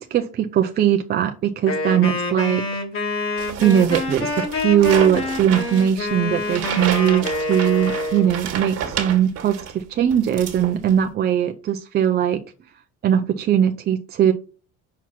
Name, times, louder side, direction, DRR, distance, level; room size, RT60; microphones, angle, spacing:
voice 1, 0.0-2.6 3.6-12.4 13.0-14.3, right 10 dB, 30° right, 0.5 m, -20 dB
Wind instrument woodwind instrument, 1.7-8.3, left 2 dB, 45° left, 2.4 m, -27 dB
sound 1, 3.4-9.8 10.1-11.0, right 8 dB, 50° right, 1.7 m, -30 dB
6.1 x 4.3 x 5.8 m
cardioid pair, 150°, 31 cm